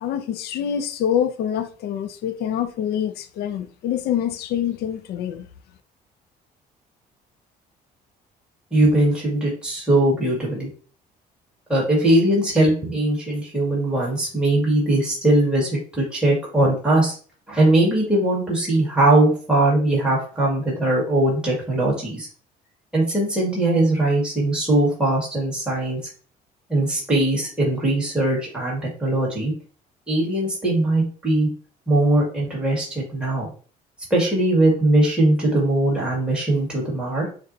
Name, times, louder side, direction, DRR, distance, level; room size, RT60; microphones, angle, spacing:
voice 1, 0.0-5.4, left 9 dB, 70° left, 0.5 m, -26 dB
voice 2, 8.7-10.7 11.7-17.1 17.5-22.3 22.9-26.0 26.7-29.5 30.1-31.5 31.9-33.5 34.1-37.3, right 1 dB, 5° right, 1.9 m, -20 dB
6.4 x 2.3 x 2.7 m
cardioid pair, 110°, 17 cm